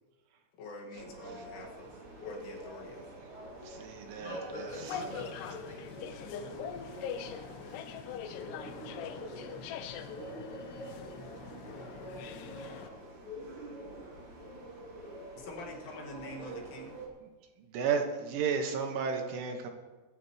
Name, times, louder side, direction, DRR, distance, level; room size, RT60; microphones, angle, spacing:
voice 1, 0.6-3.1 15.4-17.0, left 2 dB, 70° left, -1 dB, 4.2 m, -46 dB
sound 1, 0.9-17.1, right 1 dB, 30° right, 3.4 m, -46 dB
voice 2, 3.7-4.7 17.7-19.7, right 6 dB, 75° right, 4 dB, 3.7 m, -33 dB
voice 3, 4.2-7.3, left 1 dB, 45° left, -3 dB, 2.6 m, -47 dB
sound 2, 4.7-12.9, left 8 dB, 90° left, 2.3 m, -43 dB
22.0 x 12.0 x 3.1 m, 1.3 s
omnidirectional pair, 5.8 m